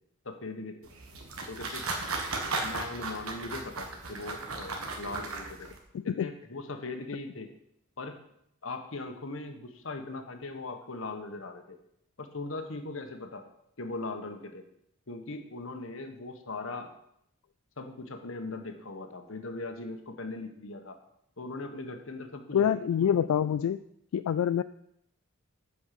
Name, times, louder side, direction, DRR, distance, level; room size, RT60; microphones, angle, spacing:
voice 1, 0.2-0.8 1.5-1.9 2.6-5.7 6.0-7.5 8.0-8.2 8.6-11.8 12.2-13.5 13.8-14.7 15.1-16.9 17.8-21.0 21.4-23.1, left 3 dB, 65° left, 6 dB, 1.2 m, -39 dB
sound 1, 0.8-5.8, right 3 dB, 80° right, 1.6 m, -36 dB
voice 2, 5.9-6.3 22.5-23.8 24.1-24.6, left 8 dB, 85° left, 13 dB, 0.3 m, -26 dB
8.1 x 5.5 x 7.5 m, 0.76 s
head